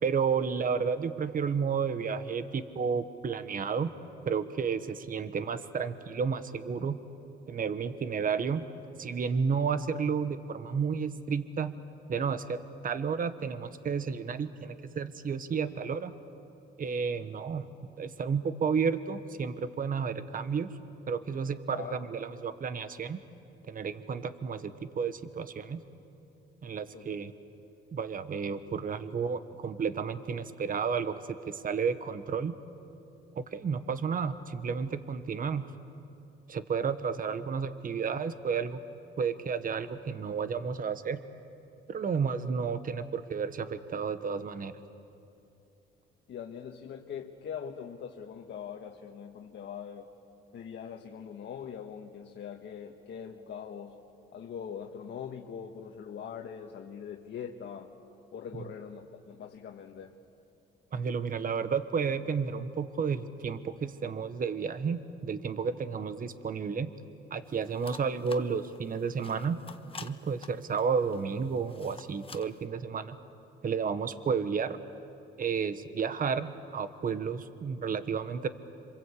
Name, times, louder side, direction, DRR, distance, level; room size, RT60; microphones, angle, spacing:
voice 1, 0.0-3.9 4.3-7.0 7.5-8.7 9.0-11.7 12.1-16.1 16.8-17.7 18.0-20.7 21.1-23.2 23.7-25.8 26.6-27.3 27.9-32.6 33.3-35.7 36.5-38.8 39.2-41.2 41.9-44.7 60.9-66.9 67.3-69.6 70.0-73.2 73.6-74.8 75.4-78.5, right 6 dB, 45° right, 11 dB, 1.2 m, -32 dB
voice 2, 21.7-22.1 26.9-27.2 46.3-50.1 50.5-54.0 54.3-57.9 58.3-60.2, left 7 dB, 65° left, 2 dB, 1.5 m, -42 dB
sound 1, 67.5-72.6, left 4 dB, 30° left, 1.2 m, -50 dB
27.0 x 25.5 x 8.4 m, 2.7 s
cardioid pair, 90°, 20 cm